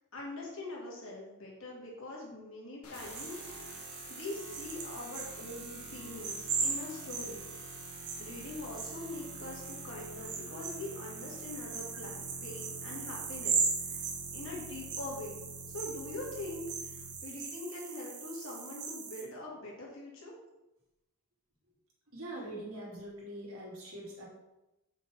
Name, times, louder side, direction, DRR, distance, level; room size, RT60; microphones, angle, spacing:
voice 1, 0.1-3.7 4.1-7.5 7.9-14.1 14.3-15.4 15.7-20.3, left 2 dB, 60° left, -4 dB, 2.5 m, -43 dB
sound 1, 2.8-17.2, left 1 dB, 90° left, 1.5 m, -50 dB
sound 2, 2.9-19.2, right 5 dB, 85° right, 1.4 m, -39 dB
voice 2, 22.1-24.2, right 1 dB, 70° right, -4 dB, 2.7 m, -43 dB
6.8 x 6.1 x 4.5 m, 0.97 s
head